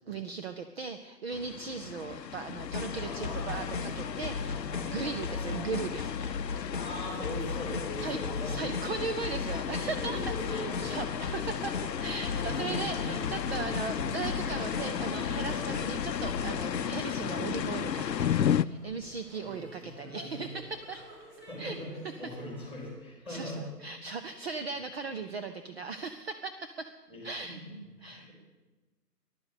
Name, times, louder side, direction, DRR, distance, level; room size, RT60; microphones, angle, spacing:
voice 1, 0.1-6.1 8.0-8.2 8.4-21.0 21.6-21.8 23.3-26.9 27.2-27.6 28.0-28.3, right 4 dB, 40° right, 7 dB, 0.8 m, -38 dB
sound 1, 1.3-18.6, left 9 dB, 90° left, 0.6 m, -34 dB
sound 2, 2.6-16.9, left 5 dB, 30° left, 0.6 m, -37 dB
voice 2, 3.0-5.9 6.8-9.0 9.7-11.0 12.3-13.1 13.9-14.3 19.4-20.5 21.5-23.8 24.7-24.9 27.1-28.3, left 1 dB, 5° right, -1 dB, 4.8 m, -42 dB
sound 3, 16.9-22.9, right 1 dB, 60° right, 6.4 m, -52 dB
14.5 x 11.5 x 8.3 m, 1.2 s
figure-of-eight pair, 145°, 49 cm